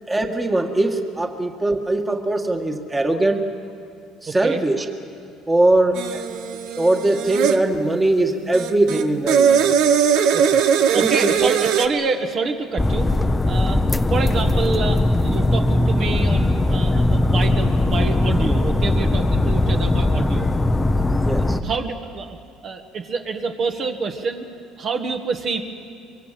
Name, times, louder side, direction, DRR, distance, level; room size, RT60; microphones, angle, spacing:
voice 1, 0.1-3.5 4.2-4.9 5.5-6.3 6.7-9.7 10.9-11.5 21.2-21.6, right 2 dB, 15° right, 4 dB, 1.8 m, -21 dB
voice 2, 4.3-4.6 10.3-10.6 10.9-13.1 13.4-13.8 14.1-20.5 21.6-22.4 22.6-24.5 24.8-25.6, right 4 dB, 45° right, 5 dB, 1.6 m, -27 dB
sound 1, 6.0-7.6 8.5-11.9, right 7 dB, 75° right, 1.3 m, -19 dB
sound 2, 12.8-21.6, left 2 dB, 15° left, 0.8 m, -19 dB
24.0 x 24.0 x 7.6 m, 2.4 s
cardioid pair, 115°, 0 cm